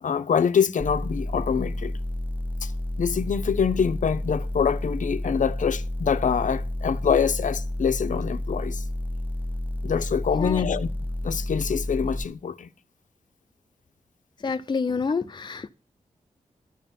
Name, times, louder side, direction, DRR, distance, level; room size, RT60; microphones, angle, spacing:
voice 1, 0.0-1.9 2.6-2.7 3.0-8.8 9.8-10.9 11.2-12.7, left 7 dB, 75° left, 0.8 m, -25 dB
sound 1, 0.8-12.2, left 1 dB, 15° right, 0.7 m, -30 dB
voice 2, 10.3-10.6 14.4-15.7, left 4 dB, 35° left, 0.7 m, -28 dB
12.5 x 5.8 x 7.4 m
wide cardioid pair, 120°, 13 cm